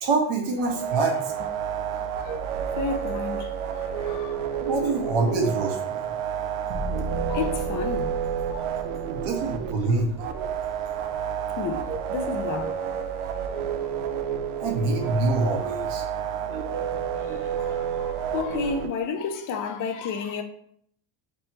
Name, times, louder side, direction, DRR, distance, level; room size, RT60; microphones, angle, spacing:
voice 1, 0.0-1.1 4.6-6.0 9.1-10.1 14.6-16.0 16.5-16.6, right 3 dB, 55° right, 1.2 m, -25 dB
sound 1, 0.6-18.9, right 8 dB, 80° right, 0.6 m, -30 dB
voice 2, 2.8-4.5 7.3-8.2 8.5-8.7 11.1-12.8 16.7-20.4, left 5 dB, 40° left, 0.5 m, -32 dB
sound 2, 6.7-10.9, right 1 dB, 30° right, 1.0 m, -36 dB
3.3 x 3.0 x 4.3 m
cardioid pair, 150°, 49 cm